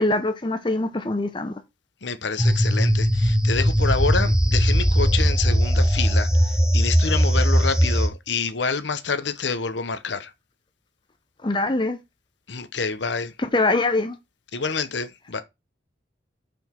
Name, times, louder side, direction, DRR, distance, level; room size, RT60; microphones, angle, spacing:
voice 1, 0.0-1.6 11.4-12.0 13.4-14.2, left 2 dB, 25° left, 0.7 m, -23 dB
voice 2, 2.0-10.3 12.5-13.3 14.5-15.4, left 5 dB, 70° left, 0.9 m, -27 dB
sound 1, 2.4-8.1, equal, 5° right, 1.0 m, -19 dB
5.9 x 5.2 x 4.4 m
head